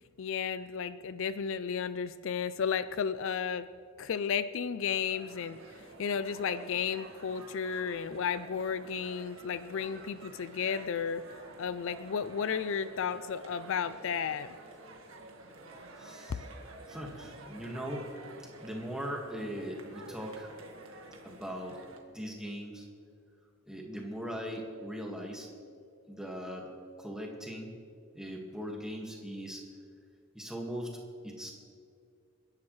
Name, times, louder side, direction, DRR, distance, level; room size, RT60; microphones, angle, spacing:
voice 1, 0.2-3.7 4.0-5.6 6.0-11.2 11.6-14.5, left 7 dB, 65° left, 13 dB, 0.4 m, -33 dB
sound 1, 4.9-22.0, right 2 dB, 70° right, 1.7 m, -50 dB
voice 2, 16.0-16.4 16.9-18.1 18.6-20.5 21.2-21.8 22.1-22.9 23.7-25.5 26.1-26.7 27.0-27.7 28.1-29.6 30.3-30.9 31.2-31.5, equal, 5° right, 0 dB, 1.8 m, -39 dB
28.0 x 10.5 x 3.2 m, 2.3 s
head